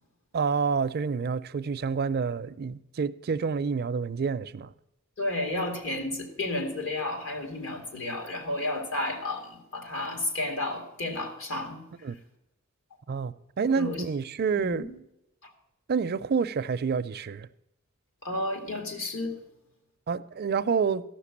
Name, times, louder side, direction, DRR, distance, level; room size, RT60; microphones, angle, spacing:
voice 1, 0.3-4.7 12.0-12.2 13.1-14.9 15.9-17.5 20.1-21.0, right 5 dB, 50° right, 0.4 m, -28 dB
voice 2, 5.2-11.8 13.7-14.0 14.6-15.0 15.4-15.5 18.2-19.4, left 2 dB, 70° left, 2.4 m, -32 dB
14.0 x 5.9 x 8.4 m
head